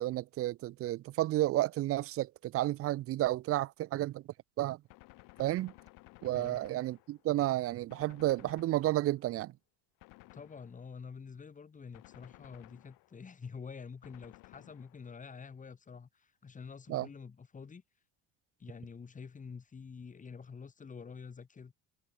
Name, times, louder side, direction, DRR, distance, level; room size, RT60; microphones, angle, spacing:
voice 1, 0.0-4.2 4.6-4.8 5.4-5.7 6.2-9.5 16.9-17.1, right 15 dB, 45° right, 0.5 m, -31 dB
Gunshot gunfire, 4.9-7.4 7.9-9.3 10.0-11.0 11.9-13.3 14.0-15.3, left 23 dB, 80° left, 4.2 m, -57 dB
voice 2, 6.3-6.7 10.3-17.8 18.6-21.7, left 5 dB, 25° left, 6.0 m, -48 dB
cardioid pair, 140°, 32 cm